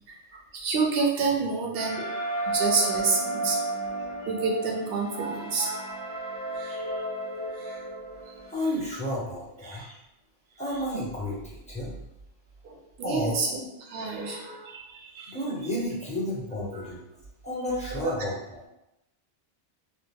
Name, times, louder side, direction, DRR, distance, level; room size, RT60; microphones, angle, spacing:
voice 1, 0.5-2.2 2.5-3.6 4.2-5.8 6.6-6.8 7.7-7.8 9.6-9.9 12.6-13.6 13.9-15.3 16.7-16.9 18.0-18.1, right 4 dB, 60° right, 1 dB, 0.8 m, -28 dB
sound 1, 1.7-8.5, right 2 dB, 85° right, 1.0 m, -33 dB
voice 2, 8.5-9.8 10.6-11.9 13.0-13.4 15.3-17.0 17.4-18.6, left 1 dB, 10° left, -5 dB, 0.6 m, -31 dB
2.8 x 2.3 x 3.5 m, 0.90 s
omnidirectional pair, 1.3 m